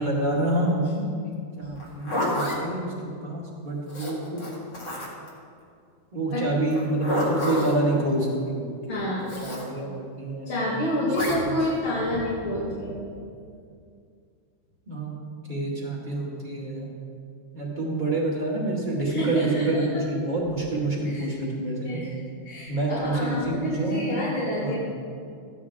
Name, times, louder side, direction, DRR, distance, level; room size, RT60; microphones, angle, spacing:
voice 1, 0.0-4.4 6.1-9.0 9.4-10.6 11.4-11.6 14.9-15.1 15.5-16.9 17.5-22.0 22.7-24.2 24.6-24.8, right 2 dB, 25° right, -5 dB, 2.2 m, -27 dB
Zipper (clothing), 1.8-2.6 3.9-5.3 6.7-7.8 9.3-9.7 11.1-11.4, equal, 60° left, 2.7 m, -29 dB
voice 2, 8.9-9.4 10.5-13.1 19.1-20.0 21.0-21.3 21.8-22.2 22.4-24.8, left 1 dB, 80° left, -7 dB, 2.7 m, -28 dB
14.5 x 9.9 x 3.6 m, 2.3 s
omnidirectional pair, 2.2 m